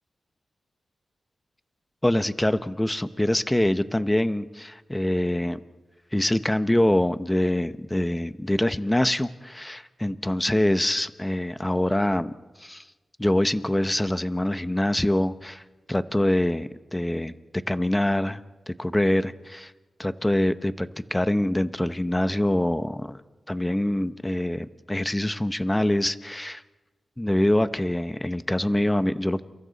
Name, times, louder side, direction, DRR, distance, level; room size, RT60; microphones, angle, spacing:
voice 1, 2.0-5.6 6.1-12.3 12.6-12.8 13.2-15.6 15.9-17.3 17.7-19.7 20.0-23.2 23.5-26.6 27.2-29.4, left 1 dB, 10° left, 11 dB, 0.9 m, -24 dB
30.0 x 28.0 x 4.1 m, 1.2 s
wide cardioid pair, 85°, 0 cm